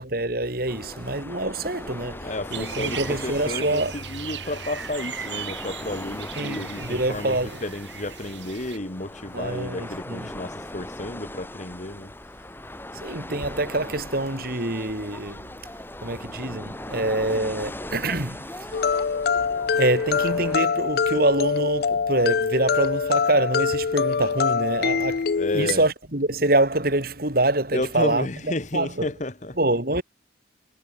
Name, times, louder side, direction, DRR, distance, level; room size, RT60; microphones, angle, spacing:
voice 1, 0.0-4.0 6.4-7.6 9.3-10.3 13.0-15.6 16.0-19.0 19.6-28.3 28.7-29.1 29.6-30.0, right 2 dB, 55° right, 4.0 m, -25 dB
sound 1, 0.7-20.6, left 1 dB, 10° left, 3.9 m, -39 dB
voice 2, 2.2-12.1 25.4-25.8 27.7-29.6, left 1 dB, 40° left, 1.7 m, -32 dB
sound 2, 2.5-8.8, right 9 dB, 75° right, 4.7 m, -37 dB
sound 3, 18.7-25.7, left 5 dB, 55° left, 0.4 m, -24 dB
head